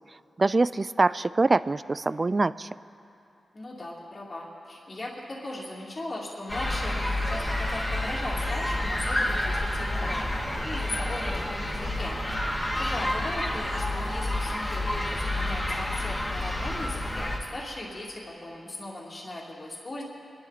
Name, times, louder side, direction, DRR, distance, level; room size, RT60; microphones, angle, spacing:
voice 1, 0.4-2.7, right 3 dB, 35° right, 17 dB, 0.3 m, -24 dB
voice 2, 3.5-10.2 10.6-12.2 12.8-20.0, left 1 dB, 40° left, -5 dB, 2.5 m, -38 dB
sound 1, 6.5-17.4, left 1 dB, 25° left, 2.2 m, -29 dB
25.5 x 11.5 x 4.1 m, 2.7 s
cardioid pair, 80°, 0 cm